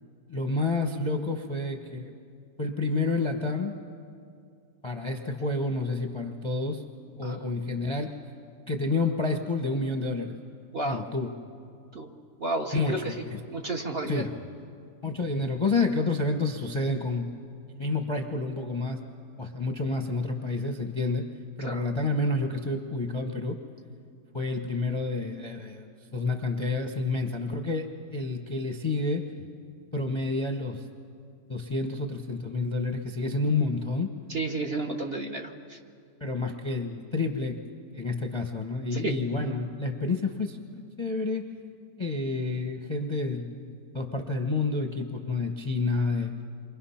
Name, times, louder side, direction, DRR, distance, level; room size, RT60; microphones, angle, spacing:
voice 1, 0.3-2.1 2.6-3.8 4.8-6.8 7.2-8.1 8.7-10.3 10.8-11.3 12.7-13.4 14.1-14.3 15.0-17.3 17.8-19.0 19.4-21.2 21.6-23.6 24.3-29.5 29.9-30.8 31.5-34.1 36.2-37.6 37.9-41.5 42.0-46.3, left 3 dB, 20° left, 4 dB, 0.9 m, -29 dB
voice 2, 12.4-13.1 13.5-14.3 21.6-21.9 34.3-35.8 38.9-39.1, right 2 dB, 35° right, 2 dB, 1.3 m, -32 dB
28.5 x 23.5 x 5.8 m, 2.4 s
omnidirectional pair, 2.0 m